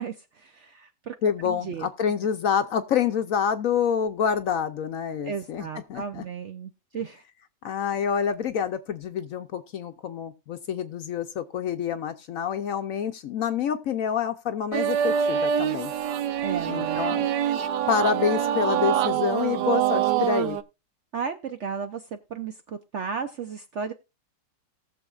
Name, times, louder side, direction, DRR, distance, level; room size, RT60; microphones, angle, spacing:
voice 1, 0.0-1.1 1.4-1.9 5.2-7.2 16.4-17.2 21.1-23.9, right 6 dB, 60° right, 0.7 m, -34 dB
voice 2, 1.2-6.2 7.6-15.9 16.7-17.3 17.9-20.6, left 7 dB, 65° left, 0.9 m, -27 dB
sound 1, 14.7-20.6, right 9 dB, 80° right, 1.3 m, -25 dB
19.0 x 6.8 x 2.4 m
omnidirectional pair, 1.9 m